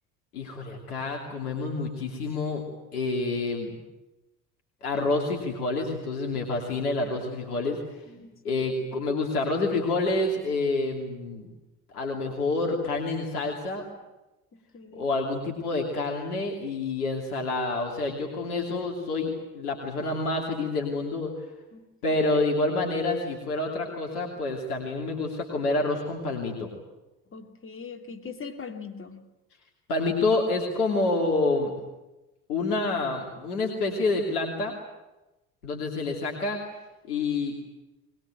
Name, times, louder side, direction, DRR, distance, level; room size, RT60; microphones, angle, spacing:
voice 1, 0.3-2.6 2.9-3.8 4.8-7.8 8.4-11.5 11.9-13.8 14.9-21.3 22.0-26.7 29.9-31.7 32.5-34.7 35.6-36.6 37.1-37.6, left 2 dB, 75° left, 0 dB, 3.1 m, -28 dB
voice 2, 8.1-8.6 14.5-15.1 21.7-21.9 27.3-29.2, left 5 dB, 25° left, 4 dB, 2.8 m, -41 dB
21.0 x 21.0 x 9.2 m, 1.0 s
figure-of-eight pair, 60°, 45 cm